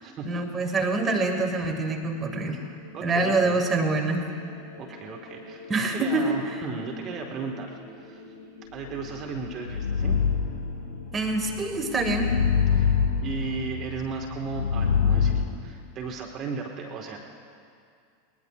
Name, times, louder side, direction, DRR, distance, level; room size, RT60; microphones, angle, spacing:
voice 1, 0.2-2.6 3.0-4.3 5.7-6.4 11.1-12.4, right 2 dB, 20° right, 3 dB, 1.8 m, -25 dB
sound 1, 1.4-13.0, left 2 dB, 70° right, 3.2 m, -48 dB
voice 2, 2.5-3.6 4.8-5.6 5.9-8.2 8.7-10.2 12.7-12.9 13.2-17.2, right 5 dB, 35° right, 0 dB, 1.6 m, -36 dB
sound 2, 9.0-15.4, left 6 dB, 70° left, 1.8 m, -26 dB
21.0 x 20.5 x 2.5 m, 2.3 s
figure-of-eight pair, 85°, 0 cm